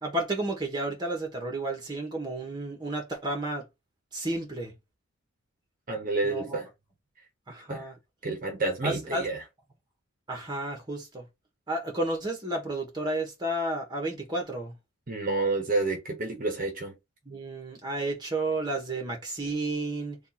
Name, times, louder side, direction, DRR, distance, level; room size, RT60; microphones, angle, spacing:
voice 1, 0.0-3.6 4.1-4.7 6.2-6.6 7.5-7.9 8.8-9.3 10.3-11.2 11.7-14.7 17.2-20.2, right 2 dB, 20° right, 1.1 m, -32 dB
voice 2, 5.9-6.7 7.7-7.9 8.2-9.4 15.1-16.9, right 3 dB, 40° right, 0.8 m, -29 dB
3.6 x 2.4 x 4.1 m
head